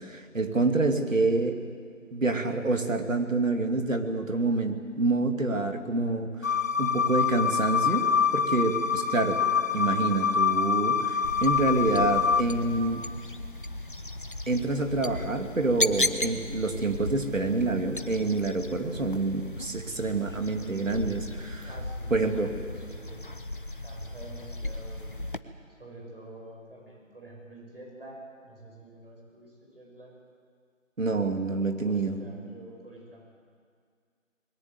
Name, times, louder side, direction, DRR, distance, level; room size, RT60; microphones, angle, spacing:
voice 1, 0.0-1.6 2.1-8.0 8.3-9.4 9.7-13.1 14.5-21.7 22.1-22.5 31.0-32.2, right 3 dB, 75° right, 5 dB, 2.8 m, -27 dB
sound 1, 6.4-12.4, left 6 dB, 75° left, 1.5 m, -25 dB
sound 2, 11.2-25.4, left 1 dB, 40° left, 0.9 m, -36 dB
voice 2, 21.6-23.5 23.8-25.1 25.8-30.1 31.8-33.2, right 1 dB, 45° right, -1 dB, 7.7 m, -47 dB
21.0 x 18.0 x 9.6 m, 2.1 s
figure-of-eight pair, 180°, 40 cm